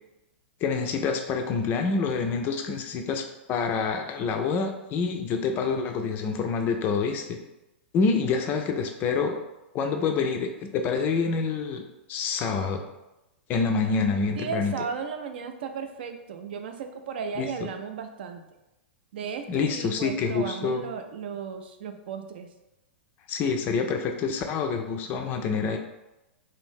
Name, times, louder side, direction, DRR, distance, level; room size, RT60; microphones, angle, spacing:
voice 1, 0.6-7.4 7.9-9.4 9.7-11.8 12.1-12.8 13.5-14.7 17.4-17.5 19.5-20.8 23.3-25.8, left 5 dB, 30° left, 5 dB, 0.3 m, -27 dB
voice 2, 14.4-18.4 19.1-22.5, right 6 dB, 60° right, 6 dB, 0.4 m, -35 dB
2.6 x 2.5 x 3.5 m, 0.97 s
figure-of-eight pair, 100°, 6 cm